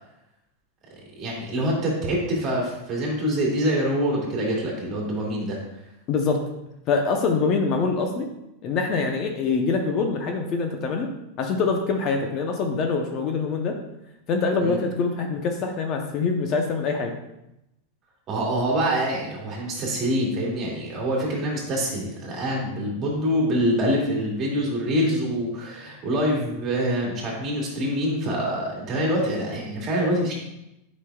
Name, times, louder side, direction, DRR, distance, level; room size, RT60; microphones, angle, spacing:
voice 1, 1.2-5.6 14.6-14.8 18.3-30.3, equal, 30° right, -3 dB, 2.1 m, -25 dB
voice 2, 6.1-6.4 6.9-8.3 8.6-11.1 11.4-13.8 14.3-17.1, left 4 dB, 40° left, 4 dB, 0.7 m, -24 dB
8.2 x 5.2 x 2.3 m, 0.88 s
supercardioid pair, 145°, 0 cm